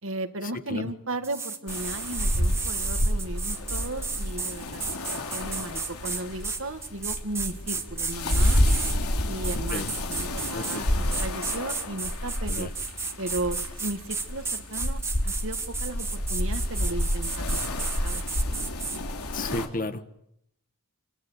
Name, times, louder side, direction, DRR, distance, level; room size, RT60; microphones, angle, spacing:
voice 1, 0.0-8.6 9.3-12.7 13.2-18.7, right 2 dB, 60° right, 8 dB, 2.0 m, -36 dB
sound 1, 1.2-9.0 9.4-10.8 11.1-19.0, right 4 dB, 10° right, 1.7 m, -33 dB
sound 2, 1.7-19.7, left 1 dB, 80° left, 3.4 m, -29 dB
voice 2, 10.5-10.9 12.5-12.7 19.3-20.2, left 2 dB, 40° left, 10 dB, 1.6 m, -33 dB
26.5 x 26.5 x 8.3 m, 0.76 s
head